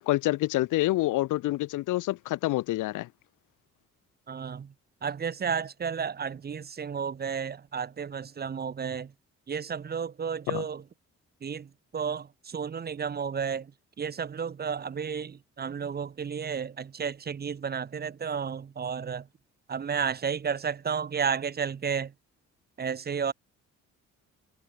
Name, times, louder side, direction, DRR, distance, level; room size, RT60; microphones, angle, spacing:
voice 1, 0.0-3.1 10.5-10.6, left 17 dB, 90° left, 1.2 m, -27 dB
voice 2, 4.3-4.7 5.0-9.1 9.5-10.8 11.4-13.7 14.0-19.3 19.7-22.1 22.8-23.3, right 6 dB, 30° right, 0.8 m, -32 dB
cardioid pair, 90°, 30 cm